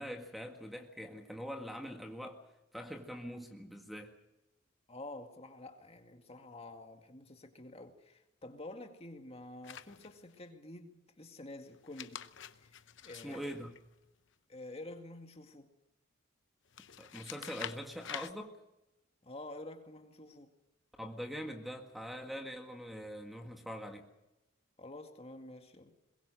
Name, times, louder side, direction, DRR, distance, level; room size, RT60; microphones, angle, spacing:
voice 1, 0.0-2.4 2.7-4.2 13.2-13.7 17.0-18.6 21.0-24.1, equal, ahead, 1.8 m, -43 dB
voice 2, 4.9-12.3 12.6-13.4 14.5-15.7 19.2-20.5 24.8-25.9, left 2 dB, 30° left, 2.1 m, -49 dB
sound 1, 9.6-10.4 11.7-14.3 16.7-18.3, left 9 dB, 60° left, 0.9 m, -47 dB
22.0 x 22.0 x 6.4 m
head